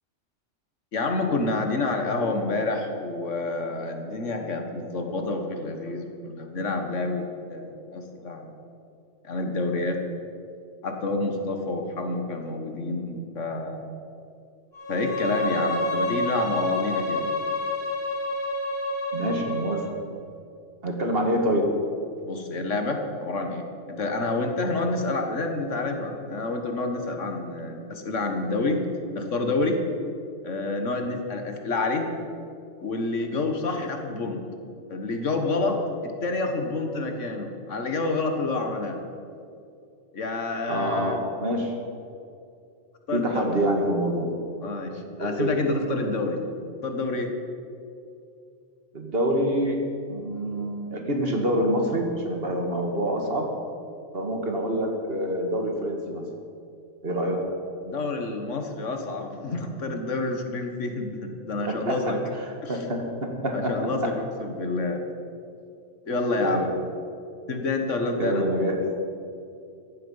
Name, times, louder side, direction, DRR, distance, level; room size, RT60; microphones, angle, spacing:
voice 1, 0.9-8.5 9.2-10.0 10.8-13.9 14.9-17.3 22.2-28.8 29.1-29.8 30.4-32.1 32.8-34.4 34.9-39.0 40.1-41.2 43.1-43.6 44.6-46.4 46.8-47.3 57.8-62.2 62.6-62.9 63.5-65.0 66.1-66.7 67.5-68.5, left 3 dB, 75° left, 4 dB, 1.8 m, -28 dB
Bowed string instrument, 14.7-19.9, left 1 dB, 30° left, 3.9 m, -28 dB
voice 2, 19.1-19.9 20.8-21.7 40.7-41.7 43.1-44.3 45.2-45.5 48.9-49.8 50.1-53.5 54.1-56.2 57.0-57.4 61.7-62.1 62.7-63.7 66.4-66.7 68.2-68.8, right 1 dB, 50° right, 2 dB, 2.0 m, -26 dB
15.5 x 11.0 x 5.6 m, 2.5 s
omnidirectional pair, 1.3 m